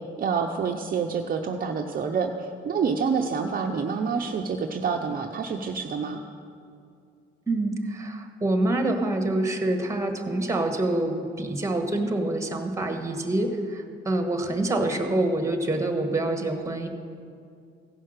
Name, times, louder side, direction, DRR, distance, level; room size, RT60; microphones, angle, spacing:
voice 1, 0.2-6.2, right 5 dB, 45° right, 3 dB, 0.7 m, -27 dB
voice 2, 7.5-16.9, right 2 dB, 15° right, 5 dB, 1.4 m, -26 dB
15.5 x 5.6 x 6.5 m, 2.4 s
cardioid pair, 90°, 20 cm